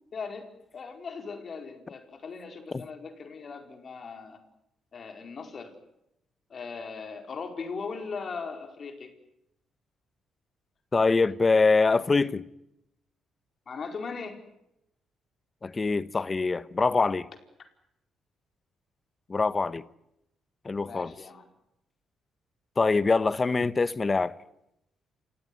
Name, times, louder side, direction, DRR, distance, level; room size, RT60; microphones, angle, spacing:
voice 1, 0.1-4.4 4.9-5.7 6.5-9.1 13.7-14.4 20.8-21.4, left 5 dB, 45° left, 4.7 m, -39 dB
voice 2, 10.9-12.4 15.6-17.3 19.3-19.8 20.6-21.1 22.8-24.3, left 4 dB, 30° left, 1.0 m, -24 dB
28.5 x 17.0 x 9.7 m
cardioid pair, 90°, 0 cm